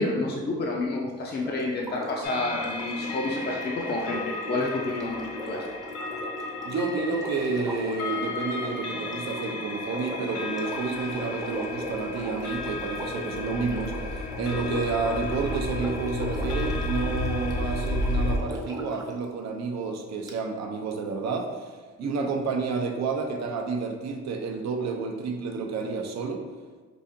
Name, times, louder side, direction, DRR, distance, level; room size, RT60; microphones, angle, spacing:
voice 1, 0.0-5.6 22.2-22.3, left 2 dB, 35° left, -2 dB, 0.5 m, -29 dB
Sink (filling or washing), 1.3-19.1 20.3-20.4, equal, 10° right, 0.7 m, -39 dB
sound 1, 2.2-18.4, left 2 dB, 85° left, 0.5 m, -33 dB
voice 2, 6.6-26.4, right 4 dB, 60° right, 3 dB, 0.6 m, -30 dB
4.8 x 2.4 x 2.6 m, 1.4 s
cardioid pair, 90°, 30 cm